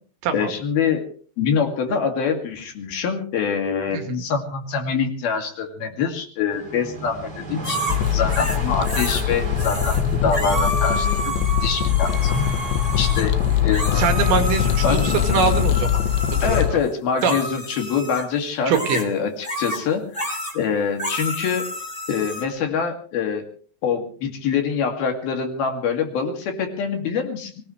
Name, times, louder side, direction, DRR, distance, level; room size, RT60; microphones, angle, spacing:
voice 1, 0.3-1.0 1.4-7.8 8.1-12.5 13.0-13.3 13.6-14.0 14.8-15.1 16.4-21.7 22.1-23.4 23.8-27.5, left 6 dB, 60° left, 4 dB, 4.0 m, -25 dB
sound 1, 6.5-16.8, left 1 dB, 25° right, 3.0 m, -33 dB
sound 2, 7.6-9.2 9.6-10.0 10.3-16.7 17.2-18.3 18.7-19.1 19.4-19.8 20.1-20.6 21.0-22.4, equal, 10° left, 2.4 m, -30 dB
sound 3, 7.9-16.7, left 11 dB, 75° left, 3.3 m, -22 dB
voice 2, 14.0-16.0 16.3-16.6 17.2-17.4 18.7-19.0, right 6 dB, 75° right, 6 dB, 4.4 m, -23 dB
24.0 x 18.5 x 3.2 m, 0.43 s
omnidirectional pair, 5.2 m